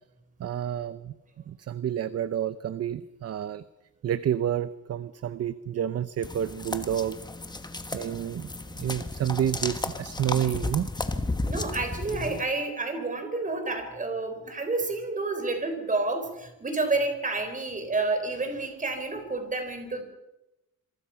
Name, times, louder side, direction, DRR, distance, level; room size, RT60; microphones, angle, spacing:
voice 1, 0.4-1.1 1.5-3.6 4.0-7.2 7.9-8.5 8.8-10.9, right 10 dB, 45° right, 14 dB, 0.7 m, -29 dB
sound 1, 6.2-12.4, left 2 dB, 15° left, 1.4 m, -33 dB
voice 2, 11.5-20.0, right 3 dB, 25° right, 7 dB, 4.1 m, -29 dB
26.5 x 23.5 x 5.7 m, 0.94 s
wide cardioid pair, 165°, 33 cm